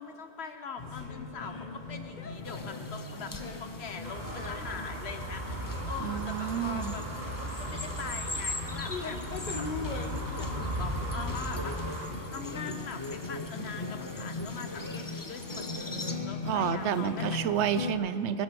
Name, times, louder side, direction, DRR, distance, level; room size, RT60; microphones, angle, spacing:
voice 1, 0.0-7.1 7.4-9.7 9.9-17.4, left 5 dB, 65° left, 7 dB, 1.2 m, -42 dB
sound 1, 0.8-17.9, left 3 dB, 45° left, 1.0 m, -39 dB
sound 2, 2.4-16.1, left 2 dB, 25° left, 0.6 m, -43 dB
sound 3, 4.0-12.1, right 1 dB, 60° right, 2.7 m, -37 dB
voice 2, 6.0-6.9 16.5-18.4, right 9 dB, 75° right, 13 dB, 0.9 m, -30 dB
22.0 x 10.5 x 5.3 m, 2.9 s
omnidirectional pair, 1.2 m